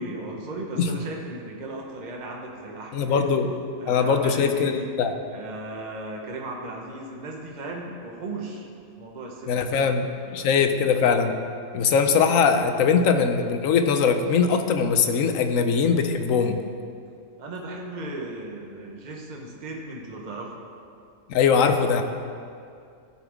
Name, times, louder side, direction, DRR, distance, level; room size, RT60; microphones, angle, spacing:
voice 1, 0.0-3.3 3.8-4.9 5.3-8.7 9.0-10.0 10.2-10.7 17.4-20.5, right 2 dB, 35° right, 0 dB, 1.2 m, -36 dB
voice 2, 2.9-3.5 3.9-5.1 9.5-10.1 10.3-11.3 11.7-16.6 21.3-22.0, left 6 dB, 70° left, 7 dB, 1.0 m, -21 dB
14.5 x 7.0 x 3.6 m, 2.4 s
omnidirectional pair, 1.5 m